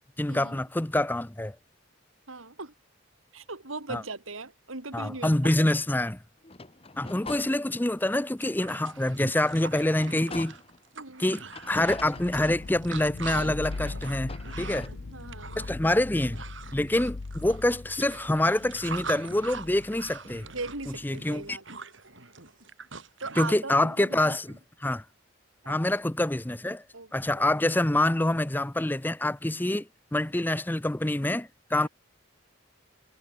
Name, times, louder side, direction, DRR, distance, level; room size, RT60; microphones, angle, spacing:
voice 1, 0.2-1.6 3.9-4.0 4.9-6.2 7.0-10.5 11.2-14.9 15.6-16.4 16.7-20.5 21.0-21.6 23.4-24.5 24.8-25.0 25.7-26.8 27.1-29.9 30.1-31.9, left 1 dB, 10° left, 0.5 m, -26 dB
voice 2, 2.3-2.7 3.3-5.6 10.9-11.4 14.6-15.7 20.5-21.6 23.2-24.6 25.6-25.8 26.9-27.5 31.8-31.9, right 3 dB, 85° right, 3.3 m, -39 dB
sound 1, 6.4-8.1 8.6-8.7 9.1-10.9 11.5-13.0 13.5-14.9, left 3 dB, 30° left, 1.4 m, -44 dB
sound 2, 7.9-8.0 8.2-23.5, right 4 dB, 70° right, 7.4 m, -43 dB
sound 3, 11.7-21.6, left 3 dB, 75° left, 0.8 m, -41 dB
head